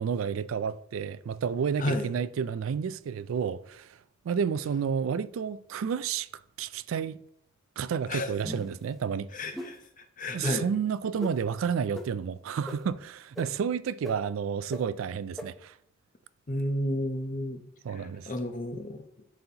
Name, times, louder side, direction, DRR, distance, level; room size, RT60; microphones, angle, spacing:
voice 1, 0.0-4.0 4.2-6.3 6.6-7.2 7.8-9.5 10.3-15.8 17.8-18.3, right 7 dB, 80° right, 0.3 m, -31 dB
sound 1, 8.4-8.8 9.5-9.7 10.4-10.5 11.2-11.3 11.9-12.0 12.7-12.8 13.4-13.5 14.0-14.1 14.7-14.8 15.4-15.5, left 1 dB, ahead, 0.7 m, -37 dB
voice 2, 9.3-10.7 16.5-17.6 17.9-19.0, left 1 dB, 40° left, 0.7 m, -32 dB
11.5 x 4.1 x 2.9 m
head